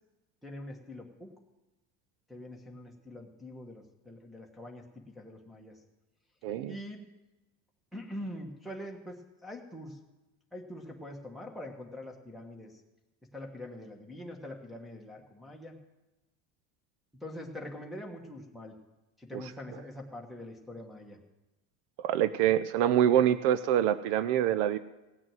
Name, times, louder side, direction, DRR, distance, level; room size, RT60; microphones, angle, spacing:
voice 1, 0.4-1.3 2.3-5.8 6.7-7.0 7.9-10.0 10.5-12.8 13.3-15.7 17.2-18.7 19.2-21.2, left 1 dB, ahead, 3 dB, 1.3 m, -44 dB
voice 2, 6.4-6.7 22.0-24.8, right 10 dB, 70° right, 14 dB, 0.6 m, -25 dB
17.0 x 6.3 x 9.0 m, 1.0 s
cardioid pair, 175°, 36 cm